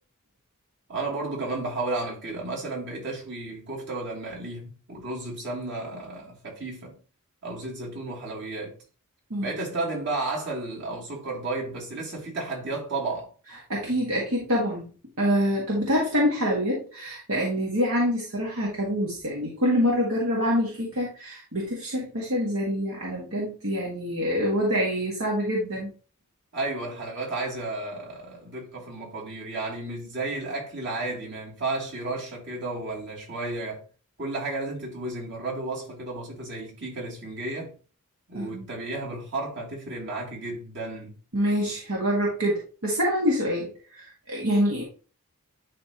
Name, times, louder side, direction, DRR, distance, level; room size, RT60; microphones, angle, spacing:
voice 1, 0.9-7.0 7.4-8.8 9.4-13.3 26.5-33.8 34.2-37.8 38.3-41.2, right 2 dB, 50° right, 2.9 m, -33 dB
voice 2, 13.7-14.9 15.2-25.9 38.3-38.7 41.3-44.8, equal, 70° right, 1.9 m, -26 dB
11.0 x 3.6 x 3.0 m
head